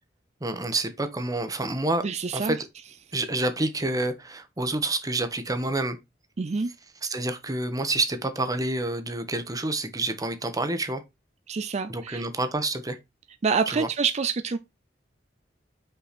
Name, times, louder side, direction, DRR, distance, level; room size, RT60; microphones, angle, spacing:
voice 1, 0.4-2.0 2.3-2.6 3.1-6.0 7.0-11.0 11.9-13.0 13.7-13.9, right 2 dB, 20° right, 1.0 m, -28 dB
voice 2, 2.0-2.6 6.4-6.7 11.5-12.2 13.4-14.6, right 5 dB, 40° right, 0.4 m, -26 dB
5.8 x 4.8 x 4.1 m
head